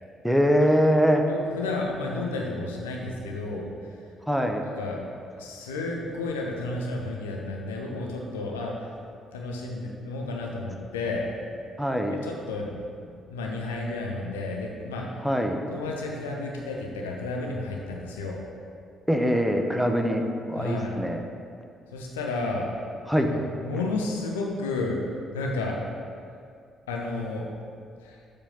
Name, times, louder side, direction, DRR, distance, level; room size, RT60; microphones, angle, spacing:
voice 1, 0.2-1.3 4.3-4.6 11.8-12.2 15.2-15.6 19.1-20.2 20.5-21.2 23.1-23.3, equal, ahead, 3 dB, 0.7 m, -23 dB
voice 2, 1.3-3.9 4.7-5.0 5.4-8.9 9.3-11.2 12.2-15.2 15.7-18.4 20.6-20.9 21.9-22.7 23.2-25.0 25.3-25.8 26.9-27.5 28.0-28.2, left 2 dB, 75° left, -1 dB, 0.7 m, -32 dB
7.2 x 4.9 x 5.4 m, 2.3 s
figure-of-eight pair, 45°, 0 cm